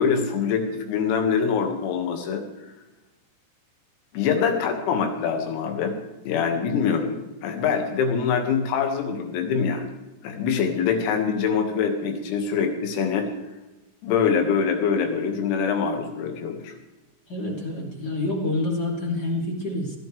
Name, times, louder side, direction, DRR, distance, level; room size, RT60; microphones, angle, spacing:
voice 1, 0.0-2.4 4.1-6.0 6.2-9.9 10.2-13.3 14.0-16.7, left 6 dB, 85° left, 4 dB, 4.6 m, -24 dB
voice 2, 17.3-20.0, left 2 dB, 25° left, -2 dB, 2.6 m, -27 dB
20.0 x 15.0 x 3.4 m, 1.0 s
omnidirectional pair, 6.0 m